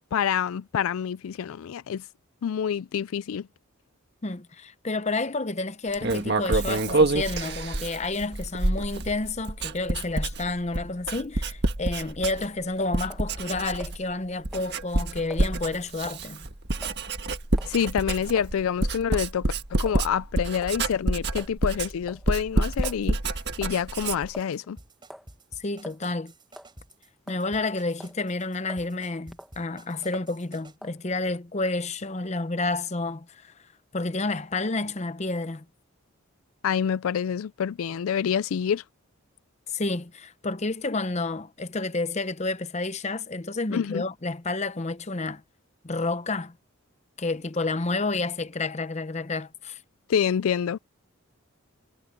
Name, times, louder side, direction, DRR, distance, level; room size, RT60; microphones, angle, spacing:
voice 1, 0.0-2.0 2.4-3.5 17.7-19.5 19.8-23.2 23.6-24.8 36.6-38.8 43.7-44.0 50.1-50.8, left 8 dB, 75° left, 0.4 m, -27 dB
voice 2, 4.2-16.5 25.6-26.3 27.3-33.5 33.9-35.6 39.7-45.4 45.8-46.6 47.2-49.8, left 3 dB, 30° left, 0.8 m, -30 dB
Writing, 5.9-12.6 12.9-14.1 14.4-24.4, right 2 dB, 50° right, 1.6 m, -27 dB
sound 1, 13.1-13.3 13.8-14.2 14.5-14.7 15.3-15.5 16.1-16.3 16.8-17.0 17.6-17.8 18.4-18.5 19.1-19.3 19.9-20.0 20.6-20.8 21.4-21.6 22.1-23.0 23.6-23.8 24.3-24.7 25.1-25.3 25.8-26.0 26.5-26.7 27.3-27.7 28.0-28.2 28.7-28.9 29.3-29.6 30.1-30.3 30.8-31.0, equal, ahead, 1.4 m, -44 dB
sound 2, 22.8-30.8, right 1 dB, 20° right, 4.4 m, -51 dB
head